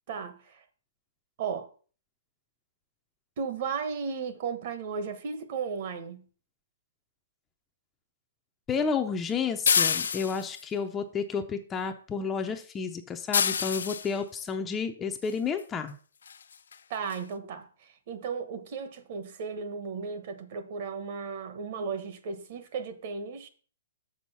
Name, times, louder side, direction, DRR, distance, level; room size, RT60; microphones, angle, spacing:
voice 1, 0.1-0.6 1.4-1.7 3.4-6.2 16.9-23.5, right 5 dB, 40° right, 1.1 m, -35 dB
voice 2, 8.7-16.0, left 5 dB, 10° left, 0.5 m, -31 dB
sound 1, 9.7-10.6 13.3-14.1 15.6-15.7 16.3-16.4 16.7-16.8 17.1-17.2, left 6 dB, 85° left, 0.6 m, -26 dB
6.6 x 6.2 x 5.5 m
hypercardioid pair, 165°, 0 cm